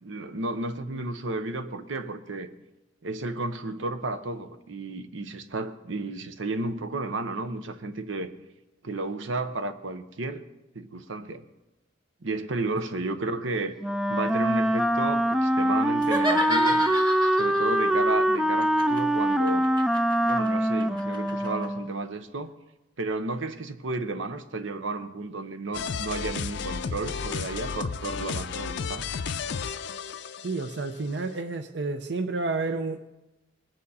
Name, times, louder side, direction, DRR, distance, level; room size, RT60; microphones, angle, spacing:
voice 1, 0.0-2.5 3.0-8.3 8.8-10.5 10.7-11.4 12.2-13.7 14.1-16.8 17.3-19.6 20.2-22.5 23.0-29.1, right 2 dB, 85° right, 10 dB, 0.9 m, -32 dB
Wind instrument woodwind instrument, 13.8-22.1, equal, ahead, 0.3 m, -24 dB
sound 1, 16.0-17.7 18.6-21.7, right 1 dB, 25° right, 1.3 m, -31 dB
sound 2, 25.7-30.9, left 6 dB, 65° left, 0.5 m, -33 dB
voice 2, 30.4-33.0, right 3 dB, 65° right, 9 dB, 0.7 m, -30 dB
20.5 x 9.1 x 4.2 m, 0.99 s
head